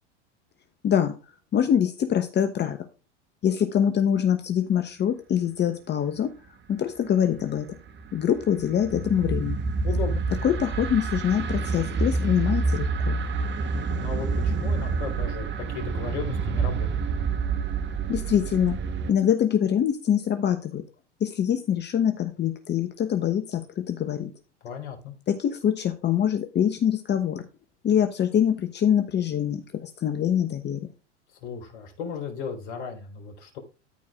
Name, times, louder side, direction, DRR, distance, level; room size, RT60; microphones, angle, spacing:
voice 1, 0.8-1.1 1.5-2.8 3.4-6.3 6.7-7.7 8.1-9.6 10.4-13.2 18.1-18.8 19.1-20.8 21.2-24.3 25.3-27.4 27.8-30.8, left 9 dB, 30° left, 8 dB, 1.1 m, -24 dB
sound 1, 7.4-19.1, right 4 dB, 30° right, 1.3 m, -28 dB
voice 2, 9.8-10.2 13.9-17.1 24.6-25.2 31.4-33.6, left 6 dB, 70° left, 3 dB, 3.9 m, -35 dB
13.5 x 4.7 x 3.6 m, 0.31 s
hypercardioid pair, 95°, 35 cm